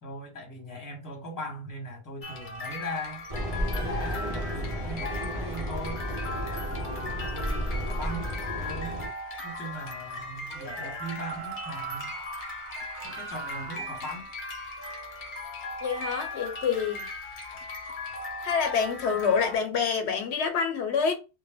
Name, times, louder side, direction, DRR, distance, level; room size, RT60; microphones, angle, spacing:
voice 1, 0.0-3.3 3.7-6.1 6.7-9.0 9.4-12.2 13.0-14.3, equal, 20° left, 0.9 m, -39 dB
sound 1, 2.2-19.6, left 2 dB, 55° left, 0.7 m, -38 dB
sound 2, 3.3-9.1, equal, 35° right, 0.9 m, -33 dB
sound 3, 10.5-13.9, right 7 dB, 65° right, 0.7 m, -41 dB
voice 2, 15.8-17.1 18.4-21.1, left 6 dB, 80° left, 0.9 m, -27 dB
2.2 x 2.1 x 3.3 m
omnidirectional pair, 1.1 m